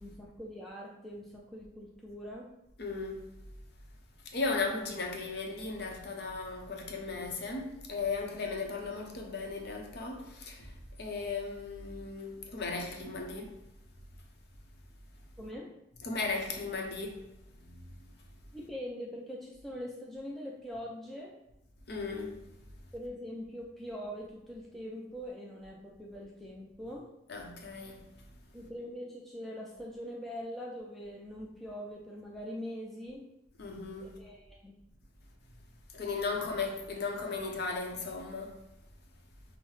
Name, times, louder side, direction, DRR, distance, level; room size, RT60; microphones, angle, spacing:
voice 1, 0.0-2.5 15.4-15.7 18.5-21.4 22.9-27.1 28.5-33.2 34.0-34.8, equal, ahead, 0.3 m, -43 dB
voice 2, 2.8-3.1 4.3-10.7 11.0-13.5 16.0-17.2 21.9-22.3 27.3-28.0 33.6-34.2 35.9-38.6, left 4 dB, 60° left, 0.7 m, -36 dB
5.5 x 2.0 x 3.1 m
head